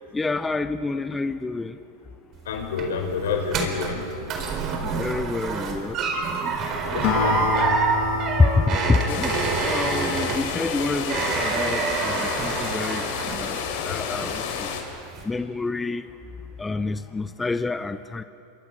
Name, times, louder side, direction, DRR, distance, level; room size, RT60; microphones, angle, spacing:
voice 1, 0.1-1.7 4.8-6.0 8.4-9.3 9.6-13.0 13.4-13.6 13.8-14.4 15.3-16.1 16.6-18.2, left 3 dB, 10° left, 11 dB, 0.7 m, -27 dB
sound 1, 2.3-13.9 14.2-14.7 15.1-15.2, right 5 dB, 40° right, 4.3 m, -27 dB
voice 2, 2.4-4.2 4.5-5.0 6.7-7.8, left 5 dB, 85° left, 5 dB, 4.4 m, -29 dB
Acoustic guitar, 7.0-10.6, left 5 dB, 55° left, 2.8 m, -28 dB
sound 2, 9.1-14.8, left 7 dB, 70° left, 3.9 m, -30 dB
27.0 x 24.0 x 6.3 m, 2.7 s
supercardioid pair, 120°, 0 cm